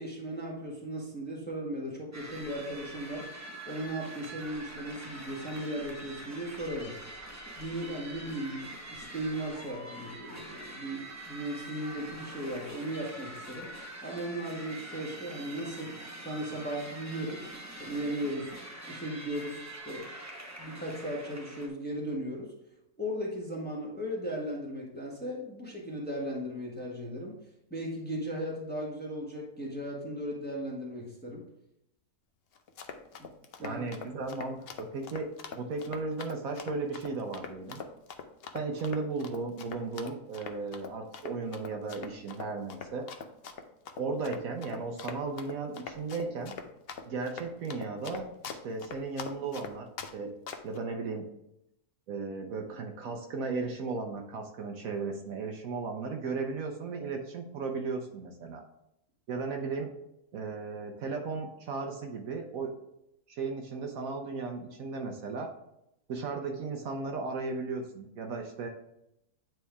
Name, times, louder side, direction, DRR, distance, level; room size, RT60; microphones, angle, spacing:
voice 1, 0.0-3.3 3.6-6.9 7.6-13.7 14.0-18.5 18.9-20.1 20.6-22.5 23.0-27.4 27.7-31.4 33.6-33.8, right 1 dB, 5° left, -3 dB, 1.1 m, -37 dB
sound 1, 2.1-21.7, right 1 dB, 15° right, 0.6 m, -45 dB
Run, 32.6-50.1 50.5-50.8, left 6 dB, 65° left, 0.6 m, -42 dB
voice 2, 33.6-37.8 38.5-43.1 44.0-46.5 47.1-49.9 50.1-50.3 50.6-51.2 52.1-58.6 59.3-59.9 60.3-62.7 63.3-65.5 66.1-68.7, right 4 dB, 65° right, 3 dB, 1.1 m, -35 dB
9.0 x 3.4 x 3.4 m, 0.82 s
omnidirectional pair, 1.7 m